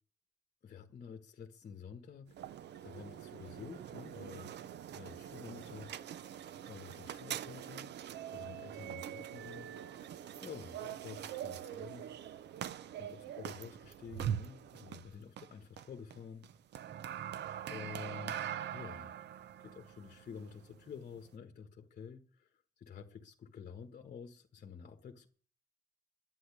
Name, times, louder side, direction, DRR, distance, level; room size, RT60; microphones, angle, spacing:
voice 1, 0.6-4.5 4.9-6.4 6.6-7.9 8.3-9.7 10.4-12.1 13.0-16.5 17.7-19.1 19.6-22.5 22.8-25.3, left 6 dB, 45° left, 1.4 m, -50 dB
sound 1, 2.3-21.4, right 10 dB, 80° right, 0.7 m, -43 dB
11.5 x 9.4 x 8.3 m
cardioid pair, 140°, 18 cm